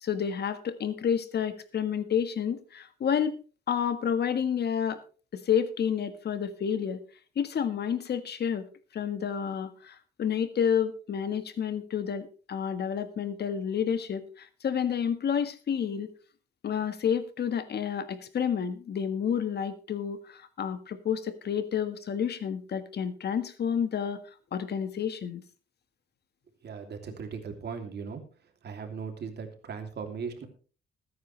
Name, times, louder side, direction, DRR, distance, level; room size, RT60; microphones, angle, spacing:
voice 1, 0.0-3.3 3.7-5.0 5.3-7.0 7.3-8.6 8.9-16.1 16.6-24.2 24.5-25.4, left 8 dB, 55° left, 11 dB, 1.6 m, -30 dB
voice 2, 26.6-28.2 28.6-30.5, right 5 dB, 55° right, 5 dB, 3.1 m, -38 dB
20.0 x 9.6 x 3.3 m, 0.38 s
cardioid pair, 90°, 20 cm